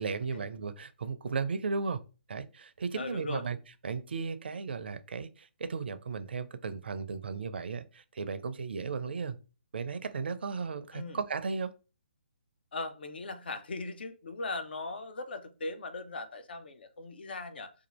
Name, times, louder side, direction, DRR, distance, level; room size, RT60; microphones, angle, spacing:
voice 1, 0.0-2.0 2.3-3.6 3.8-9.4 9.7-11.7, right 5 dB, 60° right, 0.4 m, -35 dB
voice 2, 2.9-3.4 10.9-11.2 12.7-17.7, left 3 dB, 60° left, 0.6 m, -39 dB
2.7 x 2.5 x 4.1 m
figure-of-eight pair, 135°, 6 cm